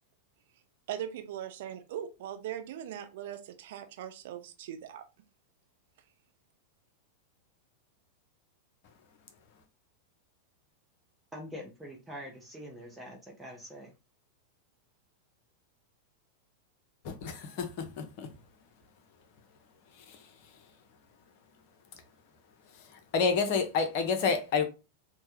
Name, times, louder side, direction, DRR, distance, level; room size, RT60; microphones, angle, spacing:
voice 1, 0.9-5.0, right 10 dB, 55° right, 0.5 m, -40 dB
voice 2, 11.3-13.9, equal, 10° right, 0.7 m, -44 dB
voice 3, 17.0-18.3 20.0-20.3 22.7-24.6, left 5 dB, 45° left, 0.7 m, -30 dB
3.2 x 2.2 x 3.0 m
figure-of-eight pair, 90°, 0 cm